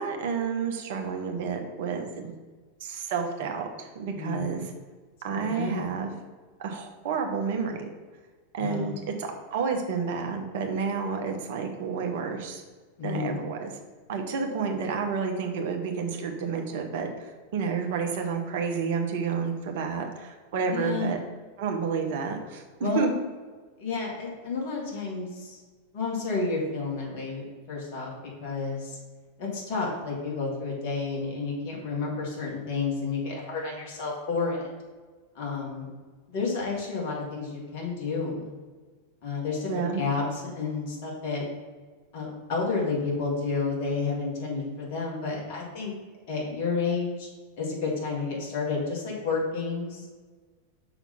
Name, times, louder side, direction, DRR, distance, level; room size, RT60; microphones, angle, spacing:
voice 1, 0.0-2.4 2.8-4.7 5.2-6.1 6.6-7.9 8.5-12.6 13.0-13.7 14.1-21.2 21.6-23.1 39.7-40.0, right 5 dB, 50° right, 3 dB, 1.0 m, -30 dB
voice 2, 4.1-4.6 5.3-5.8 8.6-8.9 13.0-13.4 20.7-21.1 22.8-23.2 23.8-25.6 25.9-28.1 28.4-29.0 29.4-34.7 35.3-35.9 36.3-38.5 39.2-41.5 42.1-45.9 46.3-47.3 47.6-50.1, left 4 dB, 45° left, -2 dB, 2.0 m, -30 dB
5.8 x 4.0 x 5.6 m, 1.4 s
figure-of-eight pair, 90°, 0 cm